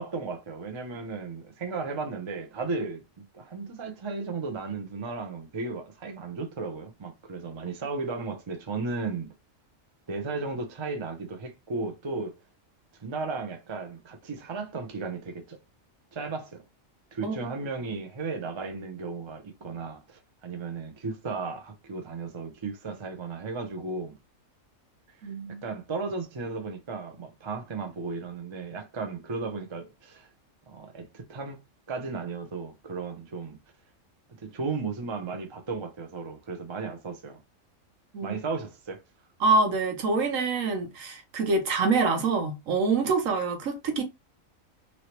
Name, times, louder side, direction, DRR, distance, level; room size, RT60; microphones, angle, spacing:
voice 1, 0.0-3.0 3.3-9.3 10.1-12.3 13.0-15.6 16.1-16.6 17.1-24.2 25.2-30.3 30.7-31.6 31.9-33.6 34.3-37.4 38.2-39.0, right 4 dB, 35° right, 0.5 m, -35 dB
voice 2, 17.2-17.5 25.2-25.6 38.1-38.4 39.4-44.0, right 3 dB, 75° right, 1.2 m, -26 dB
3.2 x 2.7 x 2.9 m
omnidirectional pair, 1.4 m